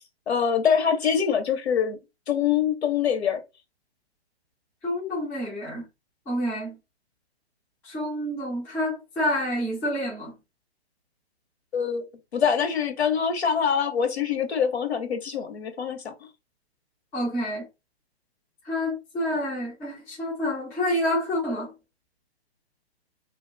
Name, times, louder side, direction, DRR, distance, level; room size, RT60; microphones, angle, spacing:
voice 1, 0.3-2.0 2.3-3.4 11.7-12.1 12.3-16.1, left 7 dB, 75° left, 1.0 m, -24 dB
voice 2, 4.8-5.9 6.3-6.8 7.8-10.3 17.1-17.7 18.6-21.7, left 1 dB, 5° left, 0.4 m, -28 dB
2.5 x 2.3 x 3.2 m
figure-of-eight pair, 135°, 32 cm